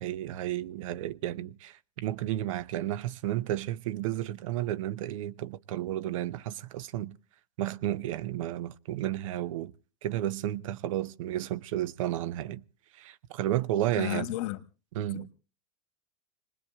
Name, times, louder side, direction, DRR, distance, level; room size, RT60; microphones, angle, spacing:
voice 1, 0.0-7.1 7.6-9.7 10.0-12.6 12.9-14.3 14.9-15.3, right 13 dB, 70° right, 0.7 m, -32 dB
voice 2, 14.0-14.6 15.1-15.3, left 16 dB, 65° left, 1.4 m, -33 dB
27.5 x 20.0 x 2.3 m
hypercardioid pair, 95°, 17 cm